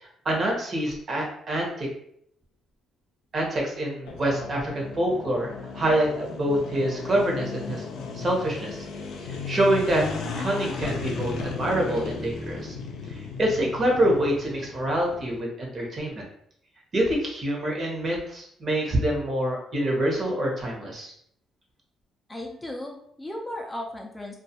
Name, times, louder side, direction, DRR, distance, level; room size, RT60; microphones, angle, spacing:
voice 1, 0.0-1.9 3.3-7.8 8.1-8.8 9.2-10.0 10.4-12.7 13.1-16.2 16.9-21.1, right 1 dB, 45° right, -1 dB, 0.9 m, -26 dB
sound 1, 4.1-15.4, left 4 dB, 85° left, 0.4 m, -35 dB
voice 2, 22.3-24.4, left 1 dB, 15° left, 0 dB, 0.4 m, -36 dB
2.3 x 2.2 x 2.7 m, 0.69 s
cardioid pair, 90°, 0 cm